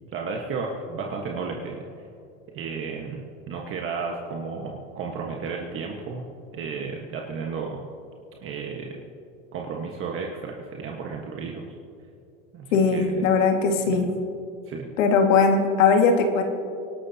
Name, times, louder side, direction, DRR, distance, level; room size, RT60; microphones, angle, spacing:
voice 1, 0.1-1.8 2.5-6.2 6.5-7.8 8.4-9.0 9.5-11.7 12.5-13.3 13.7-14.1 14.7-14.9, right 5 dB, 35° right, 0 dB, 1.4 m, -33 dB
voice 2, 12.7-14.1 15.0-16.4, left 5 dB, 80° left, 3 dB, 2.0 m, -20 dB
25.5 x 12.0 x 2.9 m, 2.5 s
supercardioid pair, 130°, 39 cm